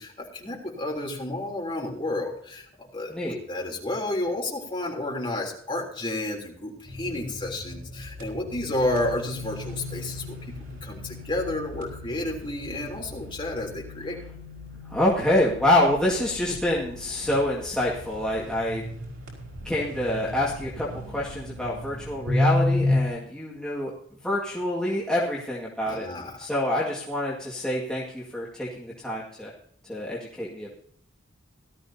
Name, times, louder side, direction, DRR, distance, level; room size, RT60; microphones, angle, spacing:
voice 1, 0.0-10.3 10.8-14.2 25.9-26.4, left 1 dB, 25° left, -2 dB, 3.4 m, -31 dB
sound 1, 6.8-23.1, left 2 dB, 75° right, 5.1 m, -33 dB
voice 2, 14.9-18.8 19.6-23.9 24.2-26.1 26.4-29.5 29.9-30.7, left 1 dB, 5° left, -6 dB, 2.0 m, -26 dB
18.0 x 13.0 x 2.8 m, 0.62 s
head